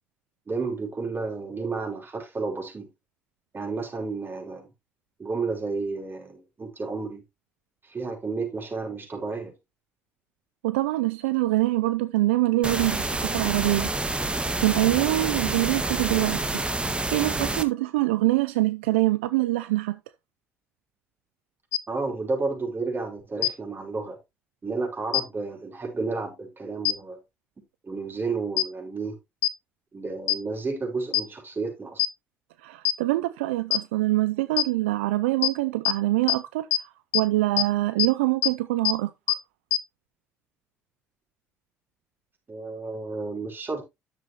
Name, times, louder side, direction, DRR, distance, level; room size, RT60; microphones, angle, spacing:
voice 1, 0.5-2.9 3.5-4.7 5.2-7.2 7.8-9.5 21.9-24.2 24.6-27.2 27.8-29.2 29.9-32.0 42.5-43.8, right 4 dB, 35° right, 5.1 m, -31 dB
voice 2, 10.6-13.9 14.6-16.6 17.1-20.0 32.6-36.7 37.1-39.4, right 18 dB, 90° right, 0.4 m, -24 dB
sound 1, 12.6-17.6, right 2 dB, 15° right, 1.6 m, -28 dB
sound 2, 21.7-21.8 23.4-23.5 25.1-25.2 26.8-26.9 28.6-28.7 29.4-29.5 30.3-30.4 31.1-31.2 32.0-32.1 32.8-32.9 33.7-33.8 34.6-34.7 35.4-35.5 35.8-35.9 36.3-36.4 36.7-36.8 37.1-37.2 37.6-37.7 38.0-38.1 38.4-38.5 38.8-38.9 39.3-39.4 39.7-39.8, left 15 dB, 90° left, 0.4 m, -21 dB
11.0 x 7.3 x 2.9 m
hypercardioid pair, 55°, 6 cm